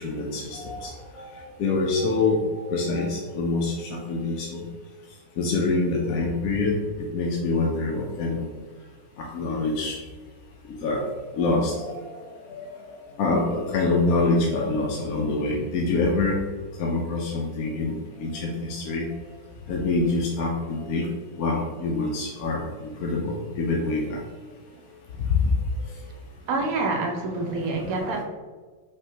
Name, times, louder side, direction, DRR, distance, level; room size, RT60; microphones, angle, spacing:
voice 1, 0.0-4.6 5.4-8.5 9.2-10.0 10.7-11.0 11.4-12.2 12.5-12.7 13.2-16.4 16.8-19.1 19.7-21.1 21.4-24.2 27.5-27.6, left 3 dB, 65° left, -1 dB, 0.9 m, -26 dB
voice 2, 26.5-28.2, right 3 dB, 65° right, 2 dB, 0.9 m, -27 dB
5.4 x 3.1 x 2.8 m, 1.4 s
omnidirectional pair, 1.9 m